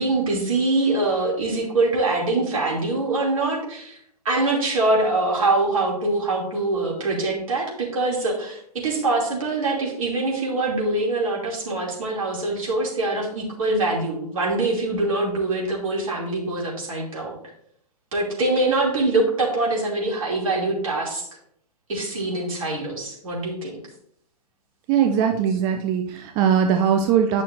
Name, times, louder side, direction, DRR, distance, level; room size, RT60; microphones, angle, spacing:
voice 1, 0.0-4.0 4.2-17.3 18.1-21.3 21.9-23.8, right 2 dB, 55° right, -2 dB, 2.8 m, -24 dB
voice 2, 24.9-27.4, right 8 dB, 20° right, 5 dB, 0.4 m, -20 dB
10.0 x 6.2 x 2.6 m, 0.68 s
figure-of-eight pair, 115°, 20 cm